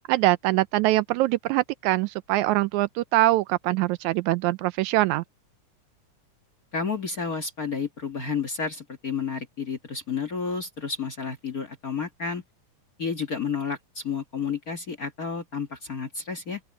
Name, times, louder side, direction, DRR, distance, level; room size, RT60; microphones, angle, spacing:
voice 1, 0.1-5.2, right 18 dB, 80° right, 1.8 m, -23 dB
voice 2, 6.7-12.4 13.0-16.6, left 5 dB, 35° left, 1.6 m, -31 dB
open air
omnidirectional pair, 3.5 m